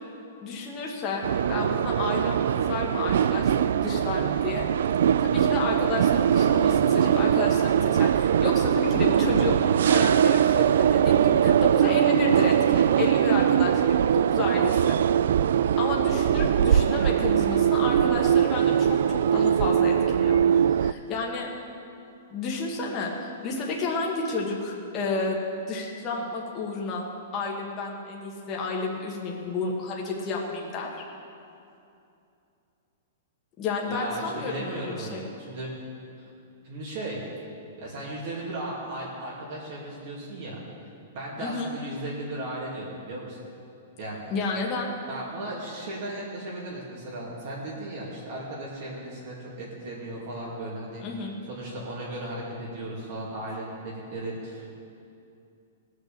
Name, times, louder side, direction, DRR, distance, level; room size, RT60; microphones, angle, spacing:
voice 1, 0.4-4.7 5.2-13.9 14.3-15.0 15.8-20.4 20.7-21.5 22.3-25.4 25.7-27.0 27.3-31.0 33.6-35.2 41.4-41.7 44.3-44.9 51.0-51.3, left 3 dB, 20° left, -2 dB, 1.4 m, -31 dB
sound 1, 1.2-20.9, right 9 dB, 65° right, 0.3 m, -22 dB
voice 2, 33.9-35.7 36.2-36.3 36.6-37.2 37.8-40.6 41.1-43.4 44.0-44.3 45.1-51.0 51.5-54.8, right 1 dB, 45° right, -6 dB, 2.5 m, -36 dB
18.5 x 6.5 x 6.9 m, 2.6 s
hypercardioid pair, 175°, 0 cm